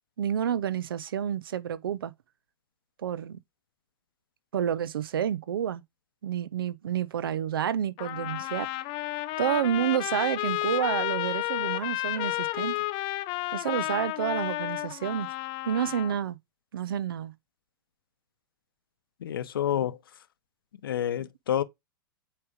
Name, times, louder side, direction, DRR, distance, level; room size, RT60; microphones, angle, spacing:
voice 1, 0.2-2.1 3.0-3.4 4.5-5.8 6.2-8.7 9.4-12.8 13.5-15.3 15.6-16.4 16.7-17.3, right 9 dB, 75° right, 0.6 m, -29 dB
Trumpet, 8.0-16.1, left 19 dB, 40° left, 0.7 m, -32 dB
voice 2, 19.2-20.0 20.8-21.6, left 10 dB, 75° left, 0.8 m, -28 dB
8.6 x 3.3 x 5.0 m
hypercardioid pair, 100°, 12 cm